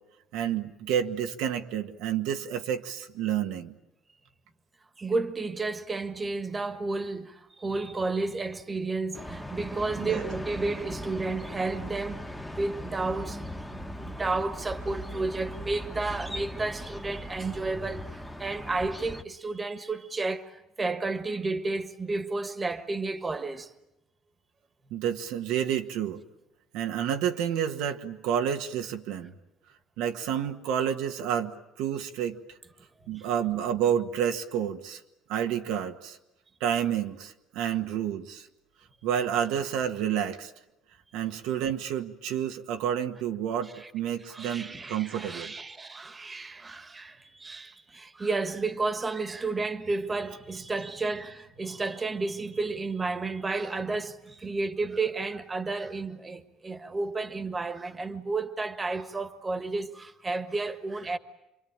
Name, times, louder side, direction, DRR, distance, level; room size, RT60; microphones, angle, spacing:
voice 1, 0.3-3.7 10.0-10.3 24.9-26.2 26.7-29.3 30.0-32.4 33.1-35.0 35.3-36.2 36.6-38.5 39.0-40.5 41.1-45.5, right 9 dB, 85° right, 1.6 m, -29 dB
voice 2, 5.0-12.2 12.5-13.4 13.7-23.7 33.1-33.3 37.5-37.7 43.7-43.9 44.3-61.2, right 3 dB, 20° right, 1.5 m, -32 dB
sound 1, 9.1-19.2, equal, ahead, 1.3 m, -39 dB
27.0 x 23.5 x 8.9 m
cardioid pair, 125°, 0 cm